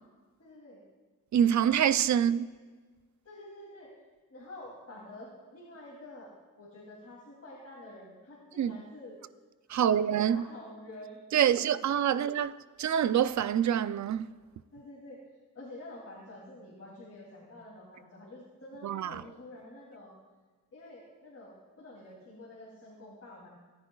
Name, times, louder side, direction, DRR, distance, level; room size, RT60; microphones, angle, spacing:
voice 1, 0.4-0.8 2.1-2.2 3.2-3.9 4.3-9.2 9.7-11.7 12.1-12.2 14.7-15.2 15.5-20.1 20.7-23.5, left 1 dB, 50° left, 2.9 m, -48 dB
voice 2, 1.3-2.5 8.6-8.8 9.7-10.4 11.3-12.5 12.8-14.3 18.8-19.2, right 9 dB, 60° right, 0.5 m, -26 dB
18.5 x 10.0 x 2.4 m
cardioid pair, 80°, 33 cm